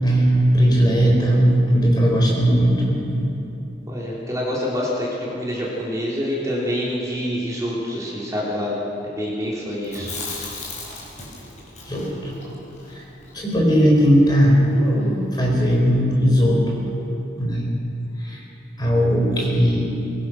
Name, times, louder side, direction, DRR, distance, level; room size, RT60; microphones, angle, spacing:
voice 1, 0.0-3.4 11.8-12.3 12.9-13.0 13.3-14.6 15.3-16.8 17.4-17.7 18.2-18.4 18.8-19.9, equal, 20° left, -2 dB, 4.3 m, -18 dB
voice 2, 3.9-8.8 9.0-10.2, equal, 20° right, -6 dB, 3.7 m, -26 dB
Chewing mastication, 9.8-14.0 14.3-14.4 14.7-15.4, left 2 dB, 40° left, 5.3 m, -34 dB
22.5 x 21.5 x 6.1 m, 3.0 s
head